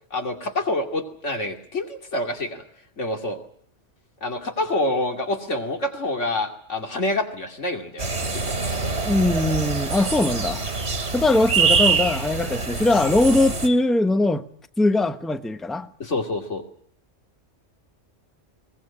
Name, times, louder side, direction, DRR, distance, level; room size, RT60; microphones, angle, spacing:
voice 1, 0.1-2.6 3.0-3.4 4.2-8.4 16.0-16.6, left 2 dB, 90° left, 3.0 m, -27 dB
sound 1, 8.0-13.7, right 4 dB, 65° right, 2.9 m, -24 dB
voice 2, 9.0-10.6 11.1-14.4 14.8-15.9, left 2 dB, ahead, 0.9 m, -21 dB
22.5 x 19.5 x 8.7 m
omnidirectional pair, 1.2 m